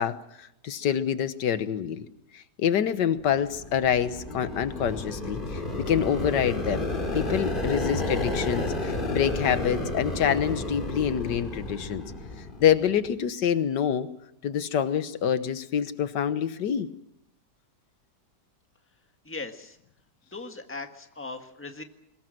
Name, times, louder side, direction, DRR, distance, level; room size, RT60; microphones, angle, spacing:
voice 1, 0.0-2.1 2.3-6.9 7.1-12.0 12.6-14.1 14.4-16.9, left 8 dB, 85° left, 12 dB, 1.7 m, -26 dB
sound 1, 3.4-13.1, left 2 dB, 30° left, 2.7 m, -31 dB
voice 2, 19.2-19.7 20.3-21.8, left 3 dB, 10° left, 6 dB, 1.5 m, -38 dB
23.0 x 20.0 x 7.8 m, 0.80 s
omnidirectional pair, 1.8 m